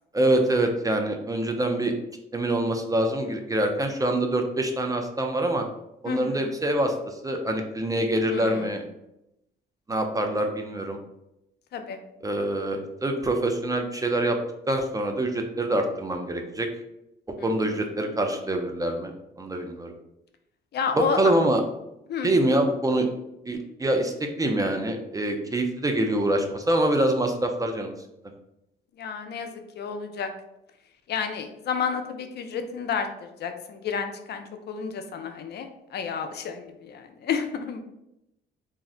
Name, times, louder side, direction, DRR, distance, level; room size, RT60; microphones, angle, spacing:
voice 1, 0.1-1.9 2.3-5.6 6.0-8.8 9.9-11.0 12.2-14.4 14.7-16.7 17.4-19.9 21.0-21.6 22.2-23.1 23.5-27.9, right 1 dB, 15° right, 4 dB, 0.4 m, -25 dB
voice 2, 6.1-6.6 8.3-8.7 11.7-12.0 17.4-17.5 20.7-21.2 22.1-22.3 29.0-29.5 29.8-30.3 31.1-37.8, left 6 dB, 55° left, 6 dB, 0.4 m, -31 dB
2.4 x 2.0 x 3.6 m, 0.86 s
cardioid pair, 90°, 20 cm